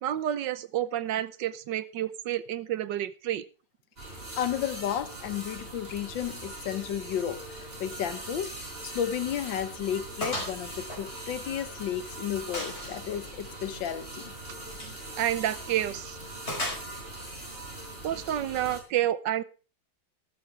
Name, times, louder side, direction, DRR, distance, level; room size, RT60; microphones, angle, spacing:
voice 1, 0.0-3.4 14.8-16.2 18.0-19.4, right 12 dB, 70° right, 1.3 m, -30 dB
sound 1, 4.0-18.8, right 1 dB, 30° right, 4.1 m, -41 dB
voice 2, 4.4-8.5 8.8-14.3, left 9 dB, 75° left, 1.7 m, -33 dB
Gunshot gunfire, 8.4-8.6 9.0-9.1 9.5-9.6 10.2-10.6 10.9-11.9 12.5-13.0 14.7-15.0 16.5-17.2, left 1 dB, 30° left, 5.5 m, -35 dB
14.0 x 12.5 x 3.3 m
omnidirectional pair, 2.1 m